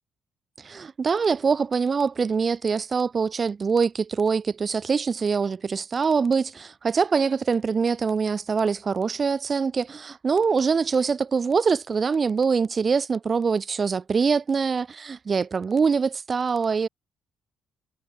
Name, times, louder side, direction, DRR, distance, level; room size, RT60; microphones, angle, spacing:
voice 1, 0.6-16.9, right 5 dB, 40° right, 3.6 m, -24 dB
cardioid pair, 90°, 0 cm